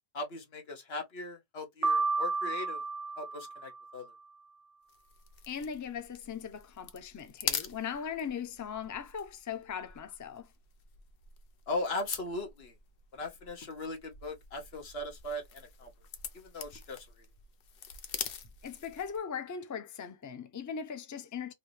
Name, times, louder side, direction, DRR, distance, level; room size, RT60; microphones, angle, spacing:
voice 1, 0.1-2.8 3.2-4.1 11.7-12.7 13.1-15.9 16.3-17.1, left 2 dB, 85° left, 1.2 m, -38 dB
Piano, 1.8-4.0, right 3 dB, 45° right, 0.6 m, -32 dB
sound 1, 4.9-19.3, left 7 dB, 70° left, 0.8 m, -44 dB
voice 2, 5.5-10.5 18.6-21.5, left 7 dB, 30° left, 0.4 m, -39 dB
3.2 x 2.7 x 3.2 m
omnidirectional pair, 1.0 m